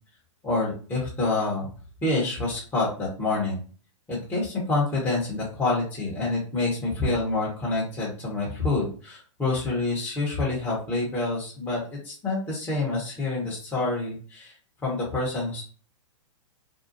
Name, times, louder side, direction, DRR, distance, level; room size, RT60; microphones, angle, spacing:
voice 1, 0.4-1.7 2.0-3.6 4.1-14.5 14.8-15.6, left 2 dB, 10° left, -6 dB, 1.0 m, -27 dB
2.6 x 2.3 x 2.6 m, 0.40 s
hypercardioid pair, 125°, 17 cm